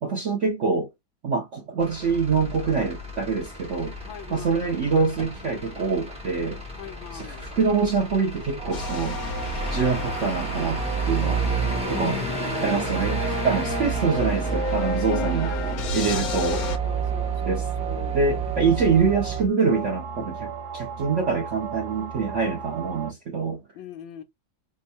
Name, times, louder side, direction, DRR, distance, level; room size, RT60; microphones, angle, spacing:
voice 1, 0.0-0.9 1.2-3.9 4.3-6.6 7.1-9.2 9.7-11.4 12.0-12.2 12.6-15.5 15.9-16.6 17.5-17.6 18.1-23.6, right 5 dB, 55° right, 0.8 m, -25 dB
Truck / Idling, 1.8-19.5, right 4 dB, 5° right, 0.5 m, -31 dB
voice 2, 4.0-4.7 6.8-7.5 11.8-12.9 15.1-18.2 23.7-24.2, left 11 dB, 85° left, 1.5 m, -40 dB
sound 1, 8.6-23.1, right 8 dB, 90° right, 1.4 m, -35 dB
sound 2, 8.7-16.8, left 5 dB, 60° left, 1.1 m, -33 dB
3.5 x 2.2 x 4.0 m
omnidirectional pair, 2.0 m